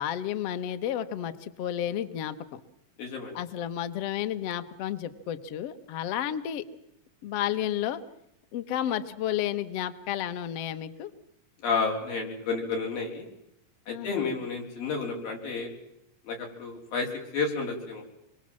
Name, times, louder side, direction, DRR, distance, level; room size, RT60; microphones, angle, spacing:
voice 1, 0.0-2.6 3.3-6.6 7.2-8.0 8.5-11.1 13.9-14.3, left 11 dB, 65° left, 10 dB, 1.6 m, -32 dB
voice 2, 3.0-3.4 11.6-13.3 13.9-15.7 16.2-18.0, left 4 dB, 90° left, 1 dB, 6.0 m, -31 dB
26.5 x 22.5 x 7.5 m, 0.76 s
omnidirectional pair, 3.9 m